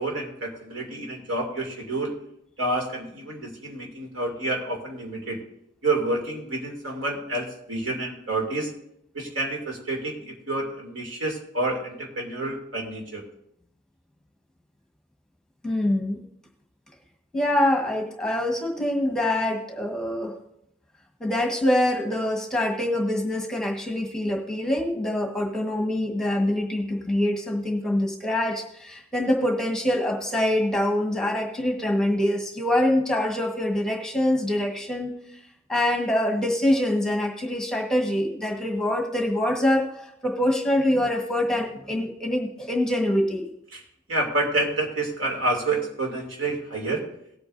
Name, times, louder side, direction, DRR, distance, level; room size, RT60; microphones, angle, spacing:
voice 1, 0.0-2.1 2.6-5.4 5.8-8.7 9.1-13.2 43.7-43.8 44.1-47.0, right 2 dB, 80° right, 0 dB, 2.7 m, -28 dB
voice 2, 15.6-16.2 17.3-20.3 21.2-35.1 35.7-43.5, left 1 dB, 5° left, 1 dB, 1.4 m, -25 dB
18.5 x 8.3 x 2.6 m, 0.76 s
head